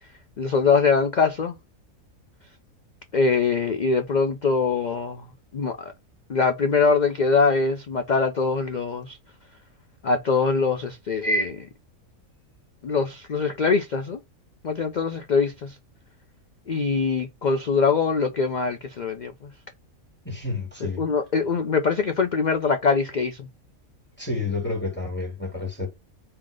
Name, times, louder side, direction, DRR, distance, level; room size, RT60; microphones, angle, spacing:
voice 1, 0.4-1.6 3.1-5.2 5.5-5.9 6.3-9.2 10.0-11.7 12.8-14.2 14.6-15.8 16.7-19.3 20.8-23.5, left 4 dB, 80° left, 0.4 m, -23 dB
voice 2, 20.2-21.0 24.2-25.9, left 3 dB, 5° left, 1.8 m, -29 dB
3.8 x 2.8 x 4.9 m
omnidirectional pair, 1.5 m